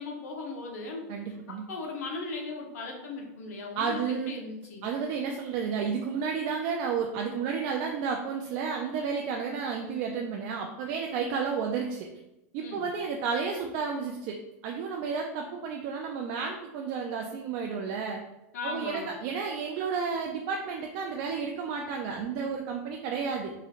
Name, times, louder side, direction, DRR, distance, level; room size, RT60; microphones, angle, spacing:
voice 1, 0.0-4.0 4.3-4.9 12.6-12.8 18.5-19.1, left 3 dB, 80° left, 0 dB, 1.0 m, -38 dB
voice 2, 1.1-1.6 3.8-4.3 4.8-12.1 12.5-14.4 14.6-18.2 18.6-23.5, right 6 dB, 45° right, 1 dB, 0.4 m, -32 dB
3.7 x 3.1 x 2.5 m, 0.94 s
supercardioid pair, 150°, 8 cm